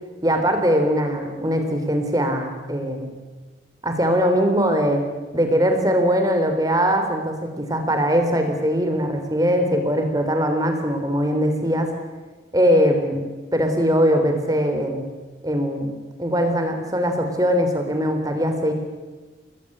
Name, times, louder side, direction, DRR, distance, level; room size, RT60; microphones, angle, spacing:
voice 1, 0.2-3.1 3.8-5.0 5.3-11.9 12.5-13.2 13.5-15.1 15.4-15.9 16.2-18.7, equal, 20° right, 5 dB, 3.4 m, -21 dB
29.0 x 20.5 x 9.8 m, 1.3 s
head